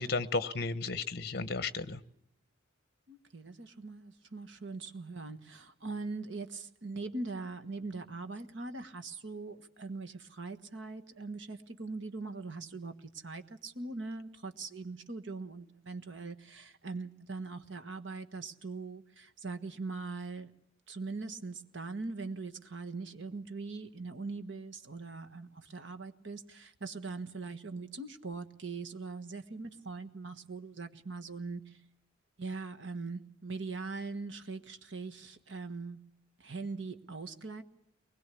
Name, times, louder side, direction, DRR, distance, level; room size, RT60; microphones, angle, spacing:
voice 1, 0.0-2.0, left 3 dB, 50° left, 1.0 m, -33 dB
voice 2, 3.1-20.5 20.9-31.8 32.4-36.0 36.4-37.6, right 3 dB, 65° right, 1.5 m, -41 dB
23.0 x 20.5 x 8.4 m
head